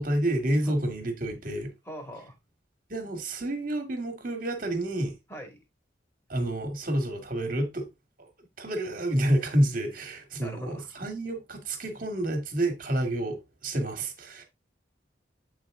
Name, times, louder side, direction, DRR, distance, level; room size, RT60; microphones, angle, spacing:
voice 1, 0.0-1.7 2.9-5.1 6.3-7.9 8.2-8.3 8.6-14.4, right 1 dB, 45° right, 1.8 m, -29 dB
voice 2, 1.9-2.4 5.3-5.6 10.4-10.9, equal, 15° left, 2.0 m, -41 dB
8.1 x 4.2 x 3.6 m
head